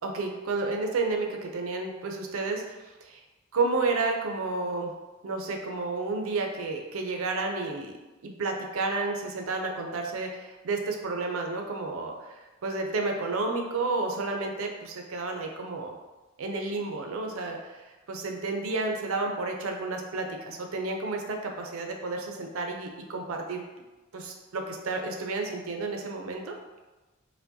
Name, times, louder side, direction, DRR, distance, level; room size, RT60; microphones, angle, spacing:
voice 1, 0.0-3.2 3.5-4.9 5.2-7.9 8.2-16.0 16.4-23.6 24.1-26.5, right 3 dB, 80° right, 3 dB, 0.5 m, -31 dB
4.5 x 2.2 x 2.6 m, 1.2 s
head